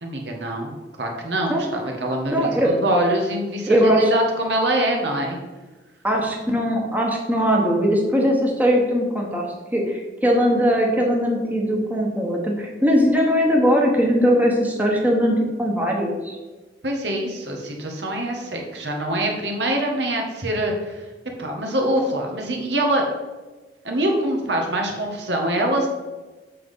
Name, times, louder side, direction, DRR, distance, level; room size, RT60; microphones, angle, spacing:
voice 1, 0.0-5.4 16.8-21.0 21.4-23.0 23.8-25.9, right 1 dB, 80° right, 1 dB, 1.7 m, -24 dB
voice 2, 2.3-2.7 3.7-4.0 6.0-9.5 9.7-16.4, equal, 10° right, -1 dB, 1.3 m, -20 dB
7.6 x 6.1 x 5.6 m, 1.2 s
head